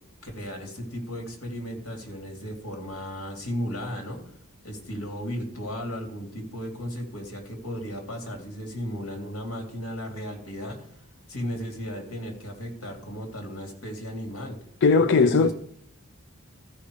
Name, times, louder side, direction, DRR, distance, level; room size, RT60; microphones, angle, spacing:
voice 1, 0.2-4.2 4.6-11.0 11.3-14.6 14.9-15.5, equal, 80° left, 2.7 m, -35 dB
voice 2, 14.8-15.5, left 4 dB, 55° left, 0.5 m, -18 dB
14.5 x 5.6 x 4.9 m
head